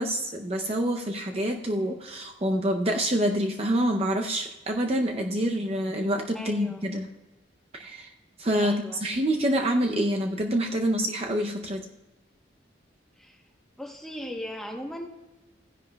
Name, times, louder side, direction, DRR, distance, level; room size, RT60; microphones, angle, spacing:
voice 1, 0.0-7.1 7.7-8.1 8.4-11.9, equal, 30° right, 3 dB, 0.6 m, -27 dB
voice 2, 6.3-6.8 8.6-9.0 13.2-13.4 13.8-15.1, equal, ahead, 1 dB, 0.9 m, -37 dB
16.0 x 10.5 x 2.3 m, 1.1 s
head